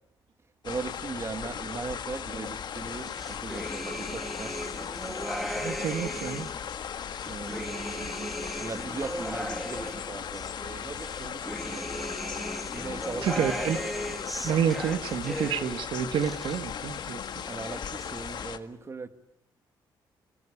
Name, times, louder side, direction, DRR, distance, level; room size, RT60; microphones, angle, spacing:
sound 1, 0.6-18.6, left 8 dB, 60° left, 1.6 m, -37 dB
voice 1, 0.6-4.6 7.3-8.1 8.6-12.1 12.4-13.7 17.5-19.1, right 4 dB, 35° right, 10 dB, 1.9 m, -39 dB
sound 2, 3.0-6.6 7.1-10.5 11.0-15.8 16.1-17.0 17.3-18.0, equal, ahead, 2.1 m, -37 dB
voice 2, 5.5-6.5 8.0-8.3 13.2-13.8 14.4-17.4, right 8 dB, 80° right, 10 dB, 1.5 m, -29 dB
24.5 x 18.5 x 10.0 m, 0.78 s
cardioid pair, 105°, 8 cm